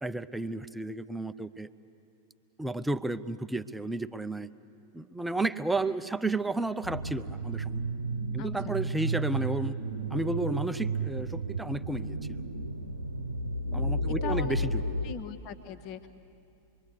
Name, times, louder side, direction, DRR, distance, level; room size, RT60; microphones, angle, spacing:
voice 1, 0.0-1.7 2.6-4.5 4.9-7.8 8.3-9.7 10.1-12.4 13.7-14.9, right 2 dB, 5° right, 12 dB, 0.6 m, -32 dB
sound 1, 6.8-15.2, right 2 dB, 85° right, 0.9 m, -32 dB
voice 2, 8.4-8.8 13.7-14.6 15.0-16.1, left 6 dB, 40° left, 9 dB, 1.1 m, -41 dB
26.5 x 22.5 x 8.3 m, 2.7 s
figure-of-eight pair, 90°, 0 cm